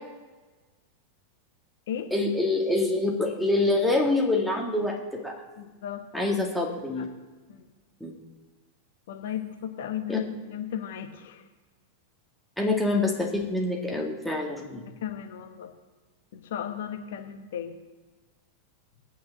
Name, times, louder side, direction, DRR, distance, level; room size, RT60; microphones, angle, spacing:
voice 1, 2.1-5.3 6.1-7.1 8.0-8.1 10.1-10.2 12.6-14.8, left 2 dB, ahead, -1 dB, 2.1 m, -26 dB
voice 2, 5.6-6.3 7.0-7.1 7.5-7.7 9.1-11.4 15.0-15.7 16.3-17.8, left 9 dB, 55° left, 6 dB, 1.1 m, -35 dB
8.6 x 8.3 x 7.3 m, 1.3 s
figure-of-eight pair, 90°, 0 cm